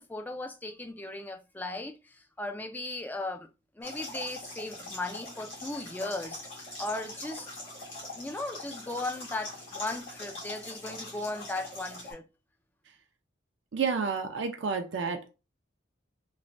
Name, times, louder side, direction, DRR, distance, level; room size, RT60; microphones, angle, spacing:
voice 1, 0.0-3.5 3.8-6.4 6.8-7.5 8.1-12.2, left 2 dB, 10° left, 0.3 m, -37 dB
sound 1, 3.8-12.1, left 1 dB, 90° left, 1.5 m, -42 dB
voice 2, 13.7-15.3, right 5 dB, 65° right, 0.4 m, -30 dB
3.1 x 2.1 x 2.5 m
head